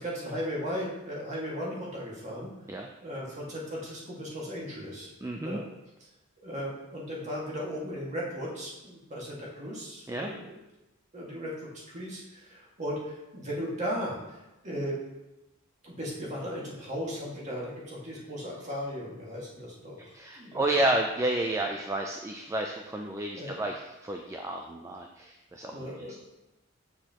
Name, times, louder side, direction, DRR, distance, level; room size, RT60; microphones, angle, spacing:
voice 1, 0.0-2.5 3.0-5.1 5.4-5.6 6.4-10.6 11.1-15.0 15.8-20.9 23.3-23.5 25.7-26.2, equal, 35° right, -5 dB, 1.9 m, -36 dB
voice 2, 5.2-5.6 10.1-10.3 20.1-26.2, right 1 dB, 15° right, 2 dB, 0.4 m, -31 dB
7.7 x 6.5 x 3.0 m, 0.98 s
head